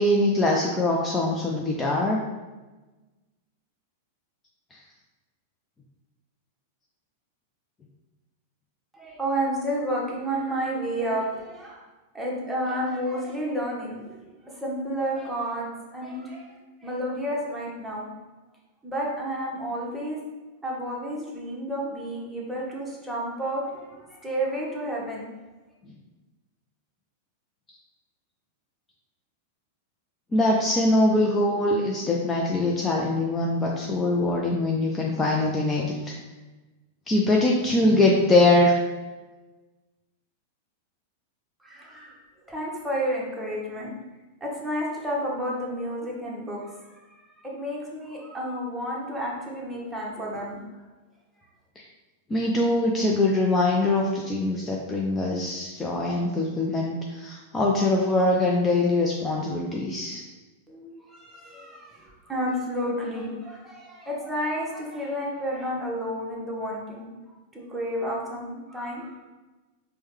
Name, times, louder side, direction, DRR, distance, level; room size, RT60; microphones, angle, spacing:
voice 1, 0.0-2.2 4.7-4.8 30.3-36.1 37.1-38.8 51.8-51.9 52.3-60.2, left 2 dB, 20° left, -2 dB, 0.4 m, -23 dB
voice 2, 8.9-11.8 12.1-16.4 16.8-18.1 18.8-20.2 20.6-25.3 41.6-42.2 42.4-43.9 44.4-46.7 47.1-50.6 60.7-67.1 67.5-69.2, equal, 5° right, -4 dB, 1.0 m, -31 dB
4.4 x 2.1 x 3.2 m, 1.2 s
hypercardioid pair, 100°, 0 cm